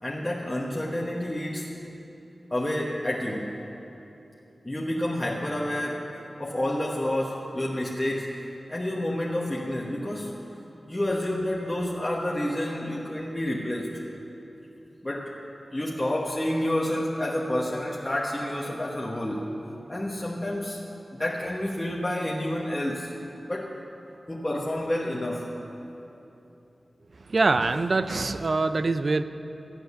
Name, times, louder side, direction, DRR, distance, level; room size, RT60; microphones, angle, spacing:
voice 1, 0.0-1.7 2.5-3.6 4.6-8.3 8.7-10.4 10.9-13.9 15.0-15.3 15.7-19.5 19.9-20.8 21.1-23.1 23.5-23.8 24.3-25.5, left 1 dB, 20° left, -4 dB, 1.1 m, -29 dB
voice 2, 27.3-29.2, right 3 dB, 55° right, 11 dB, 0.5 m, -24 dB
14.5 x 8.9 x 6.9 m, 3.0 s
wide cardioid pair, 90°, 0 cm